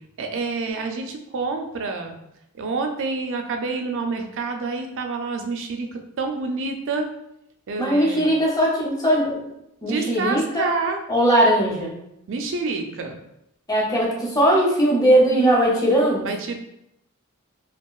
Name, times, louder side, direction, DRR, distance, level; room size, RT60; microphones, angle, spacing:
voice 1, 0.2-2.2 2.6-7.1 7.7-8.3 9.8-11.0 12.3-13.2 16.2-16.6, right 4 dB, 60° right, 4 dB, 0.4 m, -28 dB
voice 2, 7.8-9.4 9.8-10.7 11.1-11.9 13.7-16.3, right 1 dB, 15° left, -3 dB, 0.6 m, -19 dB
2.8 x 2.4 x 2.3 m, 0.81 s
head